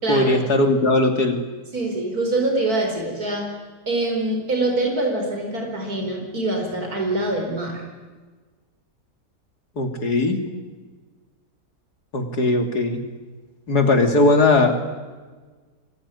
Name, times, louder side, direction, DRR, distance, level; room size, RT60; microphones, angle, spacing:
voice 1, 0.1-1.4 9.8-10.4 12.1-13.0 13.7-14.7, left 2 dB, 65° left, 5 dB, 3.4 m, -18 dB
voice 2, 1.7-3.5 3.9-7.8, right 2 dB, 60° right, 2 dB, 5.1 m, -24 dB
25.5 x 23.5 x 9.9 m, 1.4 s
omnidirectional pair, 1.8 m